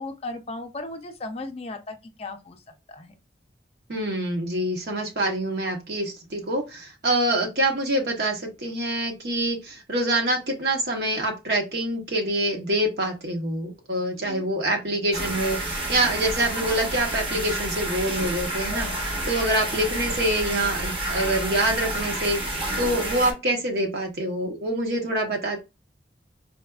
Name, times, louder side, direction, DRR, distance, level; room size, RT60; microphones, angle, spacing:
voice 1, 0.0-2.6 2.9-3.1 14.1-14.4, left 2 dB, 35° left, 0.4 m, -36 dB
voice 2, 3.9-25.6, right 1 dB, 65° right, 0.9 m, -26 dB
sound 1, 15.1-23.3, right 1 dB, 30° right, 0.8 m, -29 dB
4.1 x 2.3 x 2.3 m
head